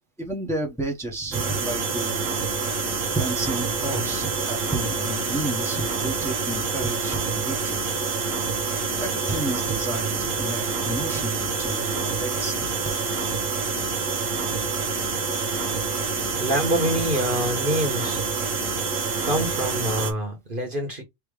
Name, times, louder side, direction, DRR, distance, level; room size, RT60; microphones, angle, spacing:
voice 1, 0.2-2.3 3.1-7.8 9.0-12.7, right 2 dB, ahead, 1.0 m, -31 dB
sound 1, 1.3-20.1, right 4 dB, 80° right, 1.3 m, -27 dB
voice 2, 16.4-18.2 19.2-21.0, equal, 40° right, 1.4 m, -26 dB
3.4 x 3.0 x 4.8 m
omnidirectional pair, 1.4 m